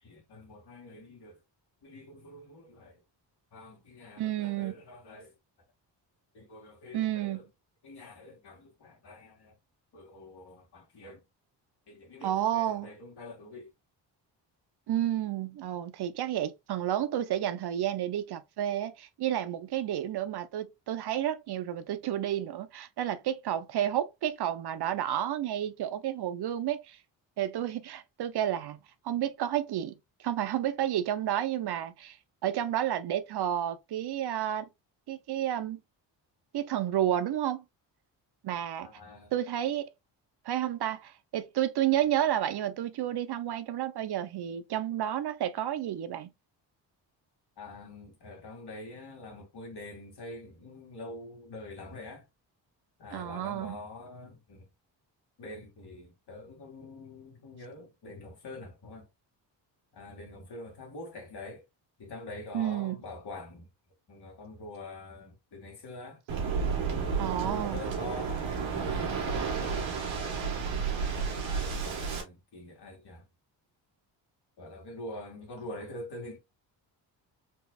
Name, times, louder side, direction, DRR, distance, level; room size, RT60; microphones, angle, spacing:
voice 1, 0.0-1.4 1.8-3.0 3.5-5.3 6.3-7.5 7.8-9.6 9.9-11.2 11.9-13.7 38.8-39.3 47.6-52.3 53.0-54.7 55.4-59.1 59.9-61.6 62.0-63.7 64.1-66.2 67.4-70.3 71.4-73.2 74.6-76.4, left 2 dB, 60° left, 2.4 m, -45 dB
voice 2, 4.2-4.7 6.9-7.4 12.2-12.9 14.9-27.0 27.4-28.8 29.0-29.9 30.2-32.2 32.4-34.7 35.1-35.8 36.5-37.6 38.4-38.9 39.3-39.9 40.4-46.3 53.1-53.8 62.5-63.0 67.2-67.8, right 11 dB, 60° right, 0.7 m, -31 dB
Waves surf, 66.3-72.2, right 5 dB, 85° right, 1.5 m, -31 dB
4.4 x 3.2 x 2.3 m
supercardioid pair, 65°, 44 cm